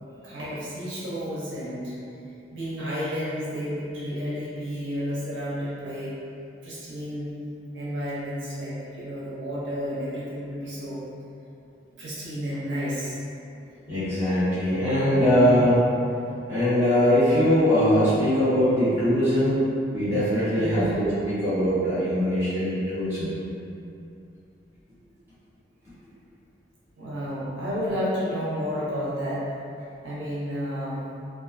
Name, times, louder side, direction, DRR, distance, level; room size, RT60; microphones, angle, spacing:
voice 1, 0.2-1.9 2.5-6.2 6.6-7.3 7.7-11.0 12.0-13.2 14.9-15.6 20.6-21.1 27.0-29.5 30.0-31.1, equal, 85° right, -9 dB, 0.6 m, -31 dB
voice 2, 13.9-15.7 16.5-19.6 19.9-23.3, equal, 15° right, -16 dB, 1.2 m, -22 dB
2.5 x 2.3 x 2.4 m, 2.6 s
head